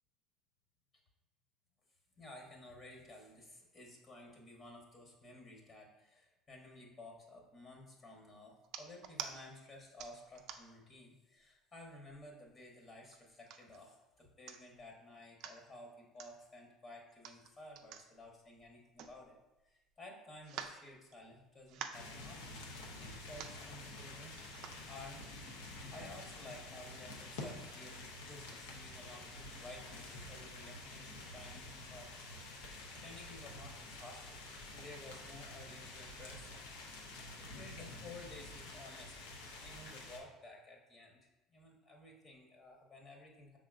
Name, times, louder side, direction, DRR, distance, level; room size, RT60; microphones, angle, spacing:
voice 1, 2.2-19.4 19.6-22.6 23.0-24.4 24.8-32.1 32.9-36.9 37.4-39.2 39.6-43.6, left 2 dB, 35° left, 0 dB, 1.1 m, -54 dB
sound 1, 8.6-9.3 10.0-10.8 11.4-11.5 11.8-12.5 13.1-13.8 14.2-14.3 14.5-14.8 15.2-15.6 16.2-16.3 17.1-19.6 19.9-20.0 20.4-21.4 21.7-22.1 22.9-23.0 23.2-23.6 24.4-24.8 25.4-25.5, right 8 dB, 60° right, 0.4 m, -48 dB
sound 2, 21.9-40.2, left 2 dB, 75° left, 0.7 m, -49 dB
5.5 x 3.7 x 2.4 m, 1.0 s
hypercardioid pair, 65°, 0 cm